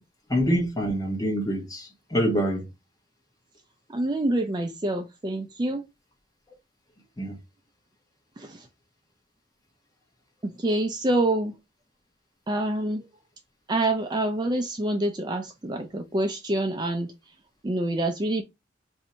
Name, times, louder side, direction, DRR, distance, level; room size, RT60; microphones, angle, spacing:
voice 1, 0.3-2.6 7.2-7.3, equal, 20° left, 0.9 m, -25 dB
voice 2, 3.9-5.8 8.4-8.7 10.4-11.5 12.5-13.1 13.7-17.1 17.6-18.4, right 1 dB, 25° right, 0.4 m, -26 dB
2.7 x 2.7 x 4.2 m
head